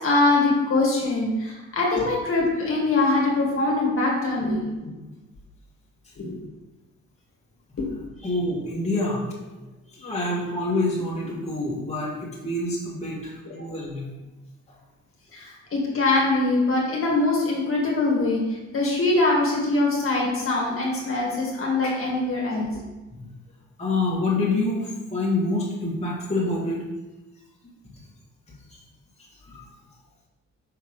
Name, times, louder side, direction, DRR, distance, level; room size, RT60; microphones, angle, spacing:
voice 1, 0.0-4.9 6.2-6.3 7.8-7.9 15.3-18.4 18.7-22.7, left 2 dB, 45° left, -2 dB, 1.8 m, -23 dB
voice 2, 8.2-9.3 9.9-14.1 23.2-23.3 23.8-26.8 28.7-28.8 29.5-29.7, left 2 dB, 20° left, -6 dB, 1.8 m, -27 dB
5.9 x 3.5 x 4.8 m, 1.1 s
cardioid pair, 90°, 30 cm